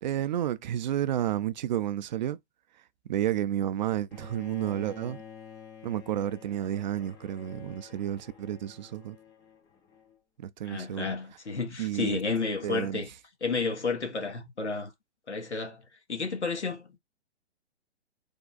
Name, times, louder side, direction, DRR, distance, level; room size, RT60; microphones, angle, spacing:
voice 1, 0.0-2.4 3.1-5.2 5.8-9.2 10.4-11.1 11.8-12.2 12.6-13.0, right 11 dB, 45° right, 0.4 m, -31 dB
Bowed string instrument, 4.1-10.2, left 7 dB, 10° left, 0.5 m, -49 dB
voice 2, 10.7-13.1 13.4-14.9 15.3-15.8 16.1-16.9, left 4 dB, 85° left, 1.3 m, -31 dB
3.6 x 2.3 x 3.9 m
figure-of-eight pair, 125°, 33 cm